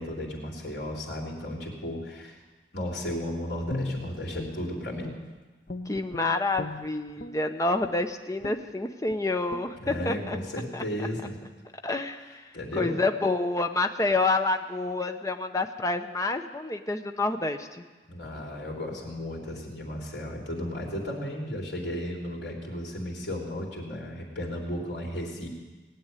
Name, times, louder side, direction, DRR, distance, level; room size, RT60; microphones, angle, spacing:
voice 1, 0.0-2.4 2.7-5.1 9.8-11.4 12.5-13.0 18.1-25.5, left 1 dB, 75° left, -2 dB, 3.8 m, -34 dB
Guitar, 3.7-5.4 5.7-7.4 7.8-8.0 8.4-8.7 9.1-9.2 9.5-9.7 10.0-10.2, left 1 dB, 45° left, 1.0 m, -37 dB
voice 2, 5.9-10.4 10.7-11.1 11.8-12.4 12.8-17.8, left 2 dB, 20° left, 6 dB, 0.8 m, -28 dB
19.0 x 8.0 x 9.7 m, 1.3 s
head